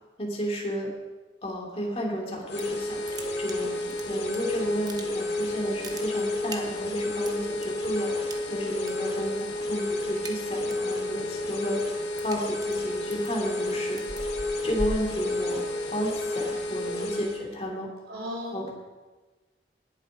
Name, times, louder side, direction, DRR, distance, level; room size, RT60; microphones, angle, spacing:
voice 1, 0.2-0.9 1.4-11.8 12.2-14.0 14.6-15.6 15.9-17.9 18.5-18.7, equal, 35° left, -1 dB, 2.8 m, -32 dB
sound 1, 2.3-2.8 3.0-4.4 4.7-5.4 5.7-7.7 8.3-8.9 9.2-9.5 9.8-10.9 11.3-15.8, right 1 dB, 20° right, 1.1 m, -39 dB
sound 2, 2.5-17.4, left 2 dB, 85° left, 1.9 m, -31 dB
voice 2, 18.1-18.7, equal, 75° right, -4 dB, 4.9 m, -35 dB
19.0 x 7.5 x 5.0 m, 1.2 s
head